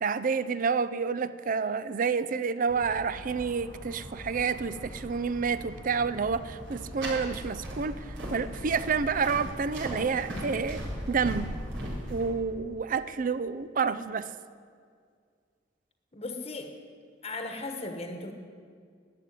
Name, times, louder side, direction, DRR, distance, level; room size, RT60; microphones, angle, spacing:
voice 1, 0.0-8.0 8.3-10.8 11.1-11.5 12.1-14.3, right 5 dB, 45° right, 15 dB, 0.5 m, -29 dB
sound 1, 2.7-12.3, equal, 90° right, 4.3 m, -39 dB
voice 2, 16.1-16.7 17.2-18.3, left 2 dB, 35° left, 5 dB, 1.2 m, -36 dB
12.0 x 8.2 x 9.3 m, 2.1 s
head